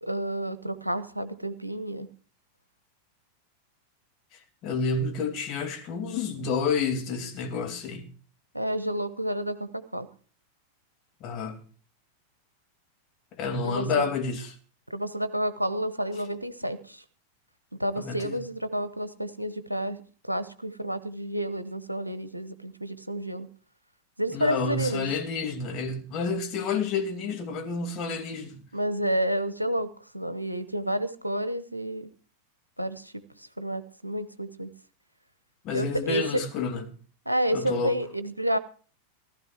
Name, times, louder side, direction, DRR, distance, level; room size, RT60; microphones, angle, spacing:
voice 1, 0.0-2.1 8.5-10.1 13.6-14.1 14.9-17.0 17.8-20.0 20.3-23.5 24.2-25.1 28.7-29.9 30.1-32.1 32.8-34.7 35.7-36.4 37.3-38.6, right 1 dB, 85° right, 0.9 m, -30 dB
voice 2, 4.6-8.1 11.2-11.6 13.4-14.6 18.0-18.4 24.3-28.6 35.6-36.9 37.5-38.0, left 4 dB, 40° left, 2.5 m, -29 dB
15.5 x 13.0 x 4.5 m
figure-of-eight pair, 90°, 0 cm